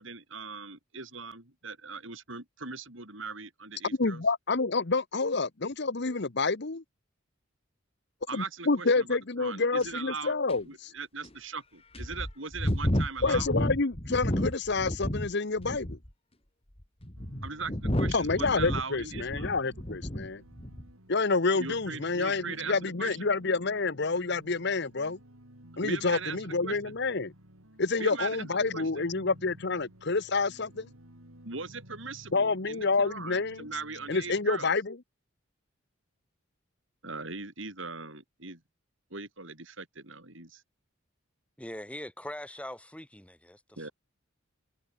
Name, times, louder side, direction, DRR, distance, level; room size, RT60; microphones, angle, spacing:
voice 1, 0.0-4.2 8.3-10.3 10.6-13.5 17.4-19.5 21.6-23.3 25.8-26.9 28.0-29.0 31.5-34.7 37.0-38.6 39.1-40.6 43.8-43.9, right 4 dB, 65° right, 5.5 m, -40 dB
voice 2, 4.0-6.8 8.3-10.9 13.2-16.0 18.1-20.4 21.1-25.2 25.8-27.3 27.8-30.9 32.3-33.7 34.1-34.9, left 3 dB, 55° left, 1.0 m, -28 dB
sound 1, 9.8-9.9 10.5-10.6 11.2-11.3 11.9-15.3 15.6-16.1 16.8-20.3 20.6-20.9, equal, 30° left, 2.7 m, -31 dB
sound 2, 17.2-34.4, right 1 dB, 90° right, 6.3 m, -53 dB
voice 3, 41.6-43.9, left 1 dB, 5° left, 7.3 m, -42 dB
head